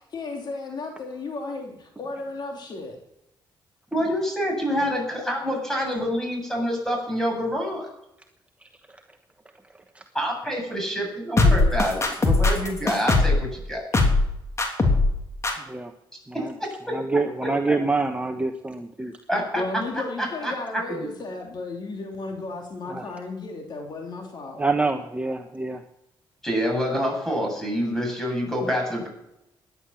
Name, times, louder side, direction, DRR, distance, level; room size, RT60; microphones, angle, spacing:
voice 1, 0.1-3.0 19.6-24.6, left 3 dB, 55° left, 2 dB, 3.2 m, -34 dB
voice 2, 3.9-7.9 10.1-13.9 16.3-16.4 19.3-19.6 20.2-20.5 20.9-21.1 26.4-29.1, equal, 5° left, 1 dB, 7.7 m, -27 dB
sound 1, 11.4-13.4 13.9-14.3 14.6-15.1 15.4-15.5, left 3 dB, 35° left, 3.1 m, -19 dB
voice 3, 16.9-19.1 22.9-23.2 24.6-25.8, right 3 dB, 15° right, 4 dB, 1.2 m, -26 dB
16.5 x 11.0 x 7.2 m, 0.84 s
cardioid pair, 90°, 9 cm